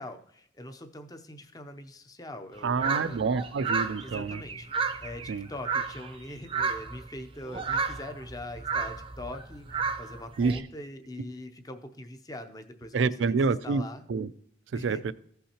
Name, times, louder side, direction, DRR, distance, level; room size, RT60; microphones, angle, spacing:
voice 1, 0.0-3.2 4.0-4.7 5.0-14.0 14.7-15.0, left 1 dB, 20° left, 7 dB, 0.6 m, -42 dB
voice 2, 2.6-4.4 5.3-5.5 10.4-10.6 12.9-13.8 14.1-14.3 14.7-15.1, right 4 dB, 80° right, 16 dB, 0.4 m, -27 dB
sound 1, 2.8-6.2 6.5-7.1 7.5-10.6, right 5 dB, 30° right, 0.5 m, -32 dB
15.0 x 5.6 x 2.9 m, 0.69 s
head